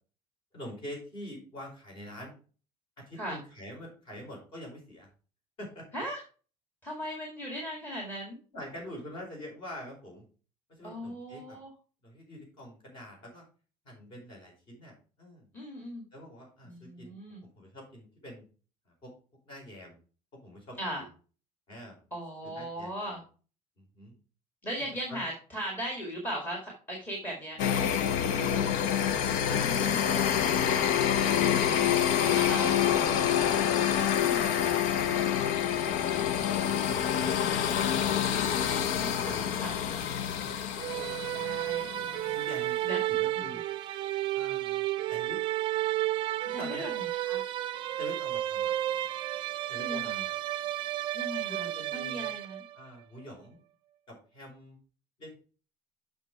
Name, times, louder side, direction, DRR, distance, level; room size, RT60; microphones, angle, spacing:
voice 1, 0.5-2.4 3.0-5.1 5.6-6.0 8.5-10.3 10.7-11.6 12.0-13.4 13.8-15.5 16.1-17.2 17.4-18.5 18.9-19.1 19.4-20.0 20.3-21.1 21.7-22.0 22.4-23.2 23.8-24.1 24.8-25.2 39.1-39.8 42.3-43.6 44.3-45.4 46.4-46.9 48.0-48.7 49.7-50.3 51.5-52.3 52.7-53.6 54.1-54.8 55.2-55.3, equal, 40° left, 0 dB, 4.6 m, -46 dB
voice 2, 6.8-8.4 10.8-11.7 15.5-16.0 16.7-17.4 20.8-21.0 22.1-23.2 24.6-27.6 29.5-30.2 32.3-32.8 34.0-34.5 38.5-39.3 39.6-39.7 40.8-42.4 42.9-43.0 46.5-46.9 47.3-47.4 49.8-50.2 51.1-51.7 51.9-52.6, equal, 15° left, 0 dB, 1.9 m, -38 dB
sound 1, 27.6-42.3, left 9 dB, 65° left, 0.8 m, -27 dB
sound 2, 40.8-52.9, right 14 dB, 40° right, 0.5 m, -32 dB
7.4 x 6.0 x 4.7 m, 0.37 s
cardioid pair, 175°, 14 cm